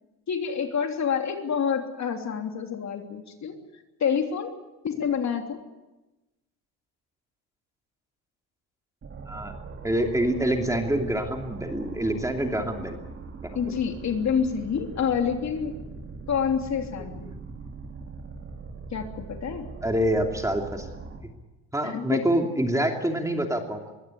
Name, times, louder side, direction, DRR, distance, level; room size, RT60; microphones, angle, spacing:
voice 1, 0.3-3.6 4.0-4.5 4.8-5.6 13.5-15.8 16.3-17.3 18.9-19.6 21.8-22.2, left 7 dB, 45° left, 4 dB, 3.2 m, -27 dB
sound 1, 9.0-21.2, right 4 dB, 30° right, 4.9 m, -41 dB
voice 2, 9.8-13.0 13.4-13.5 19.8-20.9 21.7-23.8, right 1 dB, 10° right, 3 dB, 2.8 m, -26 dB
23.0 x 16.5 x 9.9 m, 1.0 s
cardioid pair, 115°, 39 cm